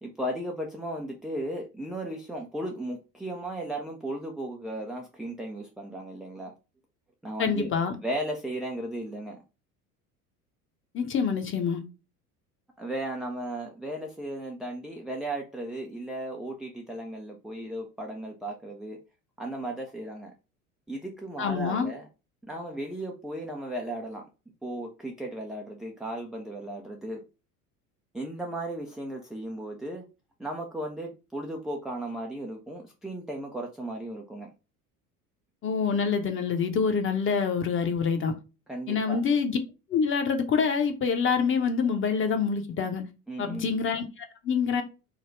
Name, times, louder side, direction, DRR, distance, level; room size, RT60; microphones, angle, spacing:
voice 1, 0.0-6.5 7.2-7.7 8.0-9.4 12.8-19.0 19.4-20.3 20.9-22.1 22.5-24.2 24.6-27.2 28.1-30.0 30.4-34.5 38.7-39.2 43.3-43.8, right 1 dB, ahead, 0.3 m, -35 dB
voice 2, 7.4-7.9 10.9-11.8 21.4-21.9 35.6-38.3 38.9-39.6 39.9-43.0 43.4-44.8, left 6 dB, 25° left, 0.9 m, -26 dB
4.0 x 2.2 x 4.5 m
figure-of-eight pair, 70°, 45 cm